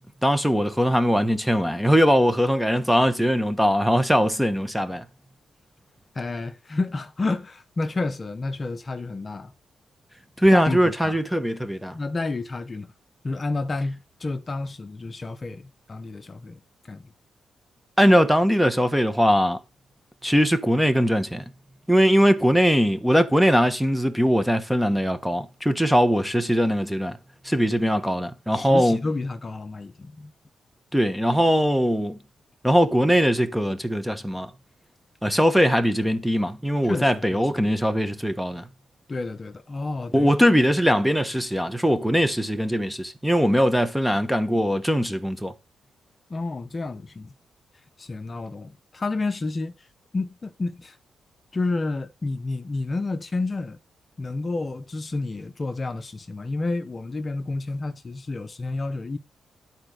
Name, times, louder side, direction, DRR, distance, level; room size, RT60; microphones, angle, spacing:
voice 1, 0.2-5.0 10.4-11.9 18.0-19.6 20.2-21.4 21.9-27.2 27.4-29.0 30.9-32.2 32.6-34.5 35.2-38.6 40.1-45.5, equal, ahead, 1.2 m, -21 dB
voice 2, 6.1-9.5 10.5-11.2 11.9-12.9 13.2-16.6 16.9-17.1 28.5-30.3 36.8-37.7 39.1-40.3 46.3-47.3 48.0-49.7 50.1-51.0 51.5-53.8 54.2-59.2, left 3 dB, 35° left, 0.9 m, -30 dB
11.0 x 4.4 x 6.6 m
cardioid pair, 95°, 0 cm